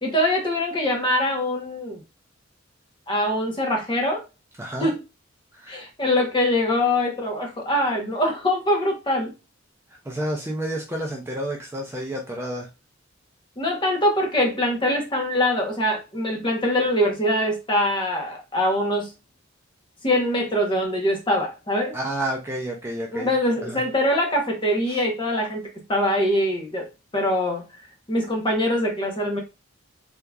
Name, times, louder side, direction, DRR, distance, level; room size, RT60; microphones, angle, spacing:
voice 1, 0.0-2.0 3.1-4.2 4.8-5.0 5.7-9.3 13.6-19.1 20.0-22.0 23.1-27.6 28.1-29.4, left 1 dB, 25° left, 1.0 m, -23 dB
voice 2, 4.6-4.9 5.5-5.8 10.0-12.7 21.9-23.3 23.6-23.8 24.9-25.0, right 1 dB, 10° right, 0.5 m, -30 dB
3.5 x 2.8 x 2.3 m
head